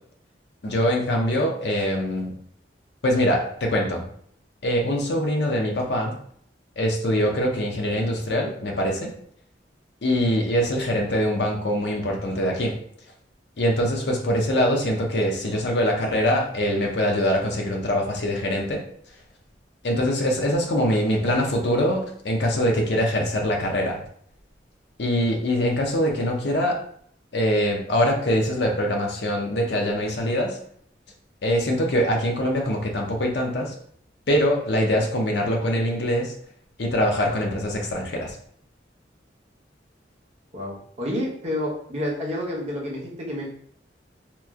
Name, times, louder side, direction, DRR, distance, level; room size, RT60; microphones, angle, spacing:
voice 1, 0.6-2.3 3.0-4.0 4.6-6.2 6.8-9.1 10.0-12.7 13.6-18.8 19.8-24.0 25.0-26.8 27.3-30.6 31.4-33.7 34.3-36.3 36.8-38.4, equal, 65° left, 1 dB, 0.7 m, -23 dB
voice 2, 40.5-43.5, left 1 dB, 35° right, -3 dB, 0.9 m, -29 dB
3.0 x 2.1 x 3.5 m, 0.62 s
head